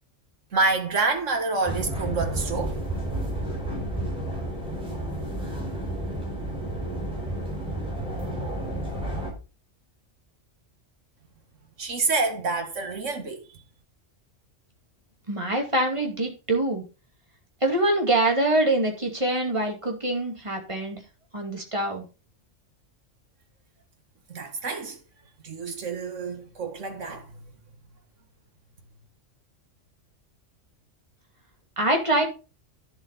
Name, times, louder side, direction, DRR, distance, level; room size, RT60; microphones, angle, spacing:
voice 1, 0.5-2.8 11.8-13.5 24.3-25.0 25.4-27.5, right 3 dB, 75° right, 2.0 m, -28 dB
sound 1, 1.7-9.3, right 1 dB, 5° right, 4.9 m, -31 dB
voice 2, 15.3-16.8 17.6-21.0 21.3-22.0 31.8-32.2, right 1 dB, 25° right, 2.5 m, -24 dB
10.5 x 7.5 x 4.1 m
omnidirectional pair, 1.3 m